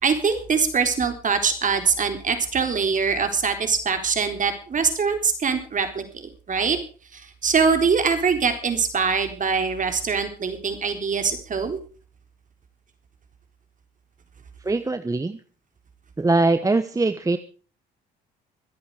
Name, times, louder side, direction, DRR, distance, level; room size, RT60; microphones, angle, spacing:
voice 1, 0.0-6.8 7.1-11.8, right 5 dB, 40° right, 7 dB, 3.9 m, -23 dB
voice 2, 14.6-15.4 16.2-17.4, right 3 dB, 15° right, 11 dB, 1.1 m, -22 dB
24.5 x 8.6 x 4.9 m, 0.40 s
supercardioid pair, 75°, 21 cm